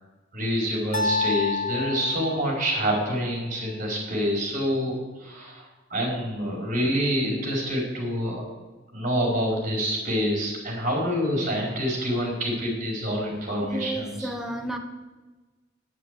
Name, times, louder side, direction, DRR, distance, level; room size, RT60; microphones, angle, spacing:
voice 1, 0.3-5.6 5.9-8.4 8.9-14.3, equal, 40° right, -1 dB, 4.9 m, -27 dB
sound 1, 0.9-3.1, left 4 dB, 40° left, 1.7 m, -29 dB
voice 2, 13.7-14.8, right 1 dB, ahead, 4 dB, 1.3 m, -32 dB
10.5 x 9.6 x 8.4 m, 1.2 s
head